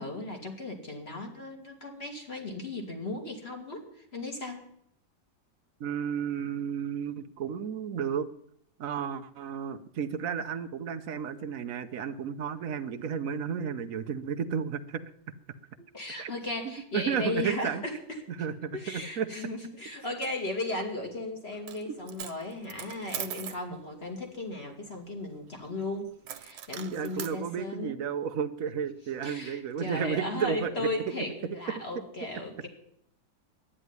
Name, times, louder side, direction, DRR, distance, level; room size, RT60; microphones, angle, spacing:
voice 1, 0.0-4.7 15.8-18.2 18.7-26.1 26.4-28.0 29.2-32.7, left 2 dB, 30° left, 2 dB, 2.5 m, -36 dB
voice 2, 5.8-8.3 8.8-15.0 16.2-16.3 16.9-17.8 18.4-19.3 21.9-22.0 23.7-23.8 26.9-30.9, right 7 dB, 55° right, 10 dB, 1.0 m, -32 dB
Coin (dropping), 21.5-21.8 22.1-23.6 26.3-27.4, right 10 dB, 80° right, 1.5 m, -40 dB
11.5 x 10.0 x 9.5 m, 0.73 s
omnidirectional pair, 2.1 m